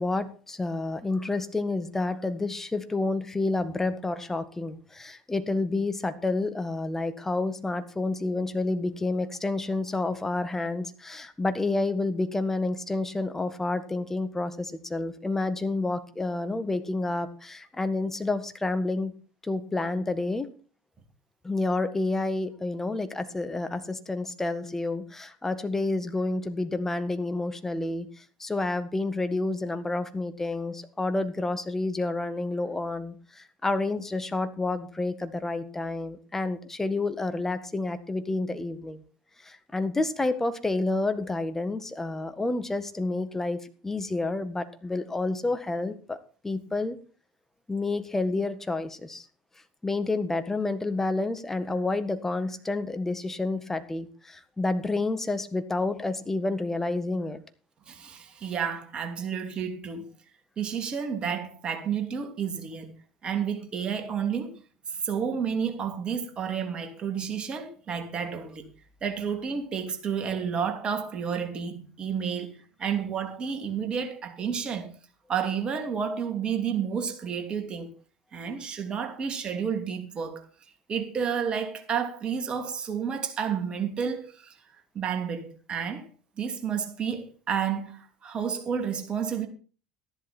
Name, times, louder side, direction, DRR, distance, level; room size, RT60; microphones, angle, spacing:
voice 1, 0.0-19.1 19.4-20.5 21.4-28.1 28.4-39.0 39.4-43.6 43.8-46.2 46.4-47.0 47.7-49.2 49.8-57.4, left 2 dB, 15° left, 1.7 m, -29 dB
voice 2, 57.9-60.1 60.6-62.9 63.2-64.6 64.9-68.7 69.0-74.9 75.3-77.9 78.3-80.4 80.9-84.5 84.9-86.1 86.4-89.5, right 7 dB, 35° right, 2.8 m, -31 dB
13.5 x 11.0 x 4.4 m
hypercardioid pair, 75°, 3 cm